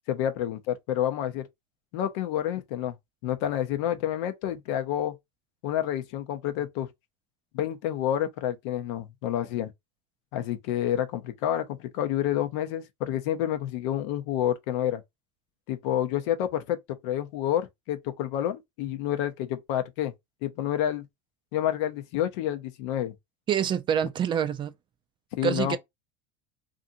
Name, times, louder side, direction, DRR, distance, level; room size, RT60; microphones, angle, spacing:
voice 1, 0.1-1.5 1.9-2.9 3.2-5.2 5.6-6.9 7.5-9.7 10.3-15.0 15.7-20.1 20.4-21.1 21.5-23.1 25.4-25.8, left 11 dB, 70° left, 0.6 m, -29 dB
voice 2, 23.5-24.7 25.4-25.8, right 9 dB, 30° right, 0.3 m, -26 dB
2.6 x 2.5 x 2.6 m
supercardioid pair, 100°, 16 cm